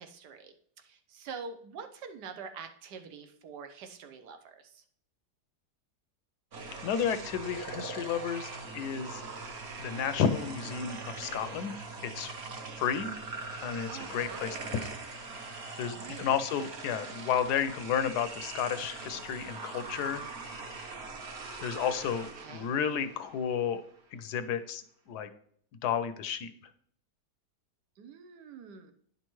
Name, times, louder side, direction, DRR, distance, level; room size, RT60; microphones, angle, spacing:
voice 1, 0.0-4.8 13.9-14.5 15.9-16.3 22.4-22.7 28.0-28.9, right 5 dB, 85° right, 7 dB, 1.4 m, -45 dB
sound 1, 6.5-23.8, right 3 dB, 50° right, 0.9 m, -42 dB
voice 2, 6.8-8.5 8.7-9.2 9.8-11.7 12.0-12.3 12.8-13.1 13.6-14.9 15.8-20.2 21.6-23.8 24.1-24.8 25.1-25.3 25.8-26.5, left 8 dB, 85° left, 11 dB, 1.2 m, -32 dB
10.0 x 5.5 x 3.1 m, 0.63 s
omnidirectional pair, 1.7 m